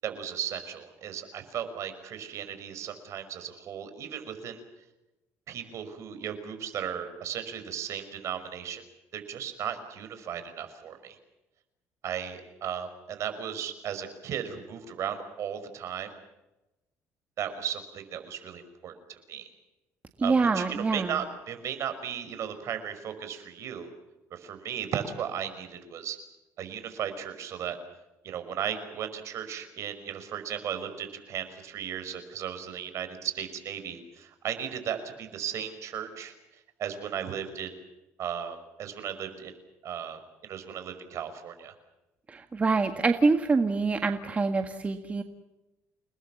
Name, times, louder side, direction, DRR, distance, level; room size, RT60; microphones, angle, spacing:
voice 1, 0.0-4.6 5.5-8.9 9.1-11.2 12.0-16.1 17.4-19.5 20.2-23.9 24.3-26.2 26.6-27.8 28.2-36.3 36.8-37.7 38.2-39.5 39.8-41.7, right 9 dB, 60° right, 9 dB, 5.5 m, -36 dB
voice 2, 20.2-21.1 42.3-45.2, right 4 dB, 25° right, 6 dB, 1.8 m, -25 dB
30.0 x 20.0 x 7.3 m, 1.0 s
cardioid pair, 125°, 6 cm